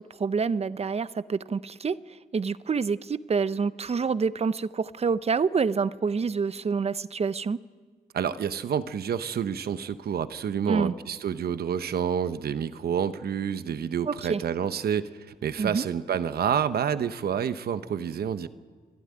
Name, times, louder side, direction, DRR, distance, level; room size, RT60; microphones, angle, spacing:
voice 1, 0.2-2.0 2.3-7.6 10.7-10.9 14.1-14.4 15.6-15.8, right 5 dB, 40° right, 16 dB, 0.7 m, -27 dB
voice 2, 8.1-18.5, right 8 dB, 80° right, 13 dB, 0.8 m, -28 dB
28.5 x 12.0 x 9.6 m, 1.5 s
cardioid pair, 75°, 16 cm